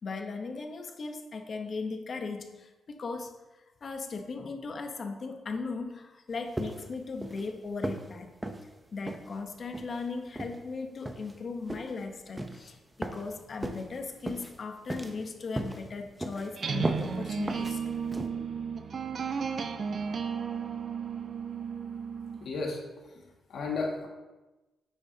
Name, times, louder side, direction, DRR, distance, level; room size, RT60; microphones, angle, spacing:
voice 1, 0.0-3.3 3.8-8.3 8.9-17.9, left 4 dB, 45° left, 5 dB, 0.9 m, -38 dB
sound 1, 6.6-6.9 7.2-7.5 7.8-8.1 8.4-8.6 9.1-9.3 9.7-10.0 10.4-10.6 11.1-11.4 11.7-11.9 12.4-12.6 13.0-13.3 13.6-13.9 14.3-14.5 14.9-15.2 15.6-15.8 16.2-16.5 16.8-17.1 17.5-17.7 18.1-18.3, right 1 dB, 10° right, 0.7 m, -35 dB
sound 2, 16.5-22.5, right 6 dB, 45° right, 0.5 m, -34 dB
voice 2, 22.4-23.2 23.5-24.1, left 3 dB, 70° left, -1 dB, 1.9 m, -34 dB
9.5 x 8.5 x 2.8 m, 1.1 s
cardioid pair, 125°, 0 cm